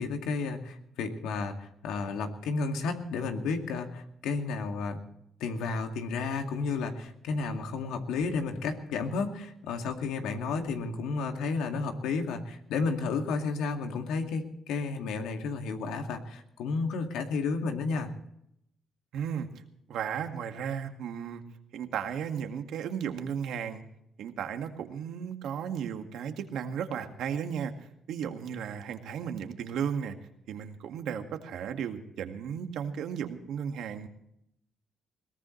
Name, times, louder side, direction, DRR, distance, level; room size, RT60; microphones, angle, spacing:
voice 1, 0.0-5.0 5.4-18.1, left 4 dB, 90° left, 4 dB, 2.2 m, -32 dB
voice 2, 19.1-19.5 19.9-21.4 21.7-23.8 24.2-27.7 28.1-30.2 30.5-34.1, right 8 dB, 80° right, 6 dB, 1.9 m, -34 dB
21.5 x 18.5 x 3.2 m, 0.76 s
cardioid pair, 90°, 0 cm